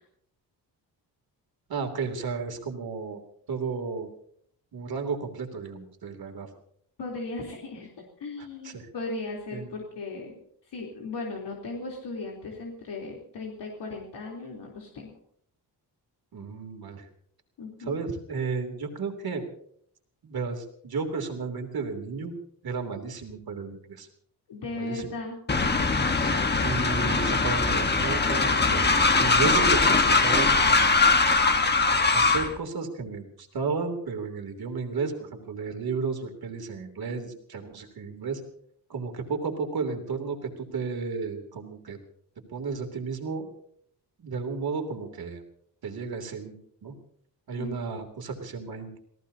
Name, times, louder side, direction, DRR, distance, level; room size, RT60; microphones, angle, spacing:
voice 1, 1.7-3.2 3.5-4.1 4.7-6.5 8.4-8.9 9.5-9.7 16.3-17.0 17.8-19.5 20.2-22.3 22.6-24.1 24.7-25.0 26.2-28.9 29.2-31.1 32.1-38.4 38.9-42.0 42.5-43.5 44.2-45.4 45.8-46.6 46.8-46.9 47.5-49.0, right 4 dB, 60° right, 4 dB, 3.1 m, -33 dB
voice 2, 7.0-7.9 8.2-10.4 10.7-15.1 17.6-18.0 24.5-25.4 47.6-47.8, left 3 dB, 80° left, -2 dB, 3.6 m, -37 dB
Train, 25.5-32.5, left 3 dB, 25° left, 1.3 m, -21 dB
28.5 x 17.5 x 2.8 m, 0.65 s
wide cardioid pair, 145°, 41 cm